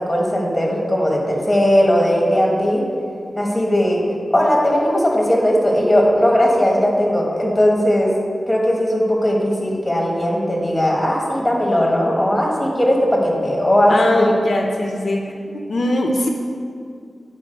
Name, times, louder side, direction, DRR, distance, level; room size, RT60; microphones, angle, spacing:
voice 1, 0.0-2.8 3.4-4.0 4.3-8.1 8.5-14.3, equal, 15° left, -2 dB, 1.4 m, -18 dB
voice 2, 13.9-16.3, left 1 dB, 70° left, 1 dB, 0.6 m, -21 dB
8.5 x 4.1 x 5.1 m, 2.3 s
wide cardioid pair, 95°, 0 cm